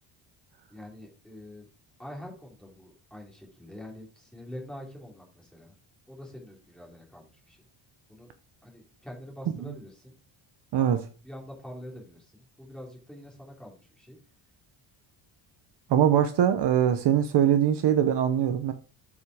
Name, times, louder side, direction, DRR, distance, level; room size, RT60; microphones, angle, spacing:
voice 1, 0.7-1.7 2.0-5.7 6.1-7.6 8.1-8.3 8.6-10.1 10.8-14.2, left 1 dB, ahead, 3.2 m, -45 dB
voice 2, 15.9-18.7, right 9 dB, 55° right, 0.8 m, -22 dB
8.1 x 5.4 x 4.8 m
cardioid pair, 145°, 49 cm